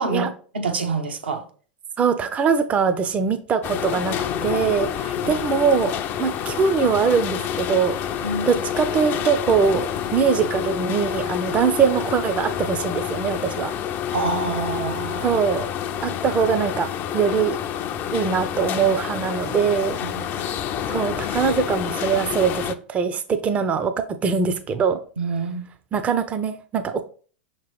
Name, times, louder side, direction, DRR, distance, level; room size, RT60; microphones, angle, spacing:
voice 1, 0.0-1.4 5.2-5.3 8.2-8.6 14.1-15.4 20.0-20.2 25.2-25.7, right 3 dB, 75° right, 0.7 m, -27 dB
voice 2, 2.0-4.2 4.4-5.9 6.2-13.7 15.2-15.7 16.0-16.9 17.1-17.6 18.1-20.0 20.3-20.5 20.9-25.0 25.9-27.0, right 6 dB, 25° right, 0.4 m, -22 dB
sound 1, 3.6-22.7, left 9 dB, 40° left, 0.4 m, -28 dB
5.9 x 2.9 x 3.1 m
figure-of-eight pair, 90°, 6 cm